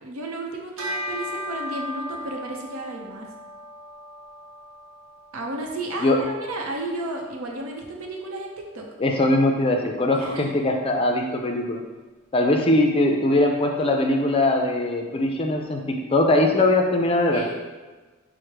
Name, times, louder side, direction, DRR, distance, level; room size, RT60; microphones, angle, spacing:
voice 1, 0.0-3.3 5.3-8.8 10.1-10.5 17.3-17.6, right 2 dB, 90° right, 1 dB, 0.7 m, -33 dB
Bell, 0.8-10.5, left 1 dB, 60° right, 1.0 m, -39 dB
voice 2, 9.0-11.8 12.3-17.5, left 2 dB, 25° left, 3 dB, 0.4 m, -21 dB
4.8 x 2.1 x 4.5 m, 1.3 s
head